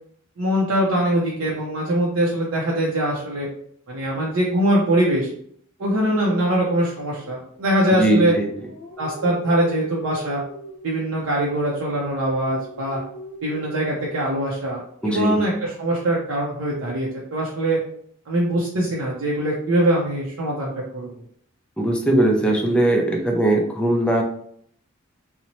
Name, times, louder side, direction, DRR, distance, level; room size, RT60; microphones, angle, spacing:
voice 1, 0.4-3.5 3.9-5.3 5.8-8.3 9.0-10.4 10.8-13.0 13.4-17.8 18.3-21.1, right 1 dB, 70° right, -4 dB, 0.5 m, -22 dB
sound 1, 5.9-7.6 8.4-11.0 11.9-14.5 15.6-16.2, right 2 dB, 80° left, 0.7 m, -40 dB
voice 2, 7.9-8.5 15.0-15.4 21.8-24.2, right 1 dB, 5° left, 1 dB, 0.4 m, -19 dB
2.7 x 2.0 x 2.9 m, 0.66 s
head